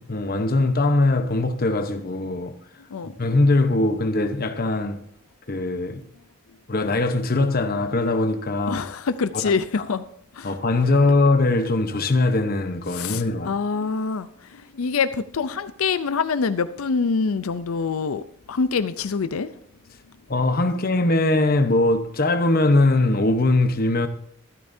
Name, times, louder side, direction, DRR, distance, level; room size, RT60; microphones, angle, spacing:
voice 1, 0.0-2.6 3.0-5.0 5.5-6.0 6.7-8.9 9.4-9.9 10.4-13.5 20.3-24.1, left 2 dB, 45° left, 1.0 m, -21 dB
voice 2, 8.7-10.0 10.4-10.5 12.9-18.2 18.5-19.5, left 5 dB, 90° left, 0.5 m, -25 dB
14.0 x 12.0 x 2.7 m
head